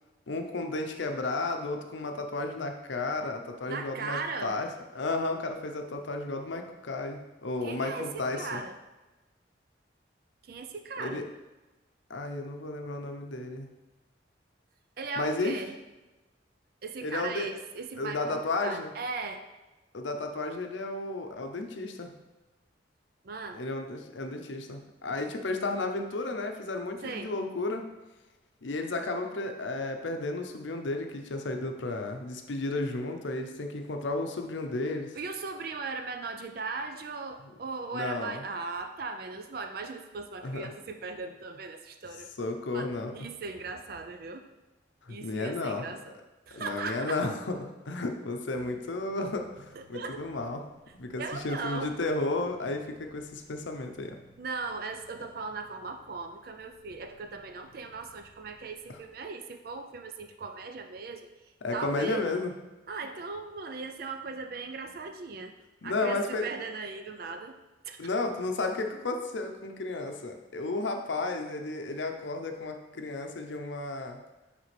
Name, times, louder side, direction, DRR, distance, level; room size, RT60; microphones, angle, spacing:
voice 1, 0.3-8.6 11.0-11.3 12.1-13.7 15.2-15.6 17.0-17.5 18.0-18.9 19.9-22.2 23.5-27.9 28.6-35.1 37.9-38.4 40.4-40.7 42.4-43.1 45.0-45.9 46.5-50.6 50.9-54.2 61.6-62.5 65.8-66.5 68.0-74.2, left 2 dB, 80° left, 4 dB, 0.6 m, -33 dB
voice 2, 3.7-4.6 7.6-8.8 10.4-11.2 15.0-15.7 16.8-19.5 23.2-23.6 27.0-27.3 35.1-42.3 42.7-44.5 45.1-46.1 46.5-47.2 49.7-50.2 51.2-52.0 54.4-61.3 61.7-62.3 62.9-65.5 65.8-67.6 67.8-68.0, right 4 dB, 50° right, 6 dB, 0.4 m, -38 dB
sound 1, 48.5-59.1, equal, 20° left, 1.6 m, -62 dB
9.2 x 3.4 x 3.3 m, 1.1 s
head